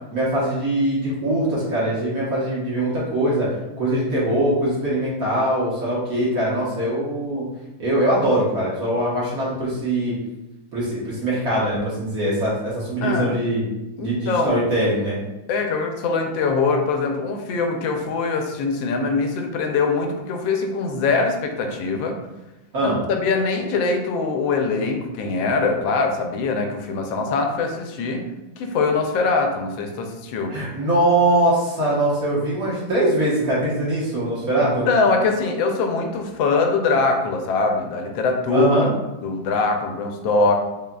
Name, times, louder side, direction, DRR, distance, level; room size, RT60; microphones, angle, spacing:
voice 1, 0.1-3.5 3.8-7.4 7.8-10.2 10.7-13.6 14.0-15.2 22.7-23.0 30.5-34.9 38.5-38.9, right 1 dB, 50° right, -8 dB, 1.4 m, -22 dB
voice 2, 14.0-14.6 15.5-22.2 22.8-28.2 28.6-30.6 34.6-38.7 39.2-40.6, left 4 dB, 80° left, 3 dB, 1.3 m, -22 dB
3.8 x 3.5 x 2.2 m, 0.99 s
omnidirectional pair, 2.1 m